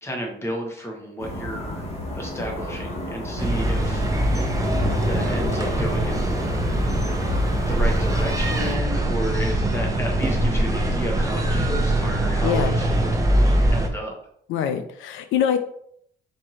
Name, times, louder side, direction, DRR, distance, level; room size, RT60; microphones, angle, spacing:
voice 1, 0.0-1.9 2.1-4.1 5.0-6.5 7.7-14.1, equal, 15° left, 0 dB, 1.1 m, -32 dB
sound 1, 1.2-8.8, left 1 dB, 30° left, 1.6 m, -31 dB
sound 2, 3.4-13.9, right 1 dB, 15° right, 0.6 m, -22 dB
voice 2, 12.4-12.8 14.5-15.6, left 8 dB, 85° left, 8 dB, 0.4 m, -23 dB
4.4 x 2.6 x 3.0 m, 0.67 s
cardioid pair, 90°, 20 cm